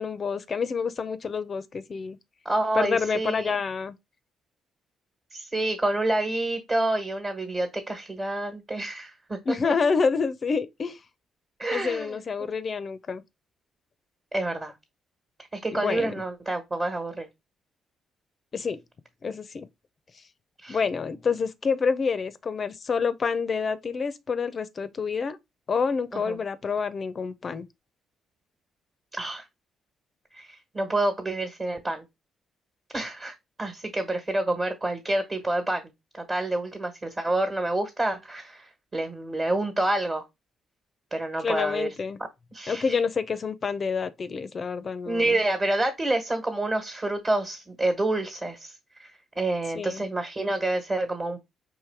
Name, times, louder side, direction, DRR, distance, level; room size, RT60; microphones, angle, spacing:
voice 1, 0.0-2.2 2.7-3.9 9.5-11.0 11.7-13.2 15.7-16.1 18.5-18.8 19.2-19.7 20.7-25.4 25.7-27.7 41.4-42.2 42.7-45.4 49.7-50.0, left 5 dB, 40° left, 0.5 m, -28 dB
voice 2, 2.4-3.5 5.3-9.7 11.6-12.5 14.3-14.7 15.5-17.3 20.6-20.8 26.1-26.4 29.1-29.4 30.3-32.0 32.9-33.3 33.6-40.2 41.1-41.9 42.5-43.0 45.0-48.7 49.0-49.1 49.4-51.4, right 2 dB, 30° right, 1.2 m, -28 dB
4.7 x 3.1 x 3.4 m
cardioid pair, 90°, 0 cm